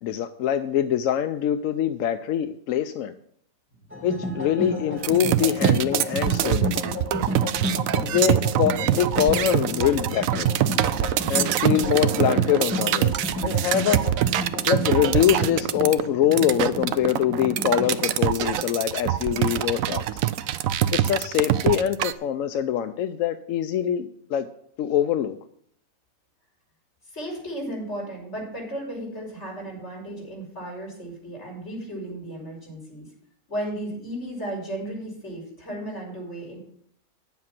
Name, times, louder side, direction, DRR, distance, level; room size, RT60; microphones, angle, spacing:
voice 1, 0.0-3.1 4.0-7.0 7.9-10.5 11.3-13.1 13.4-14.0 14.6-20.2 20.9-24.5 24.8-25.4, left 10 dB, 70° left, 9 dB, 0.9 m, -24 dB
sound 1, 3.9-18.0, left 1 dB, 10° right, 2.4 m, -32 dB
sound 2, 5.0-22.1, right 11 dB, 75° right, 1.0 m, -24 dB
voice 2, 27.0-33.1 33.5-36.6, right 1 dB, 50° left, -3 dB, 5.2 m, -34 dB
9.7 x 7.5 x 5.9 m, 0.67 s
omnidirectional pair, 1.5 m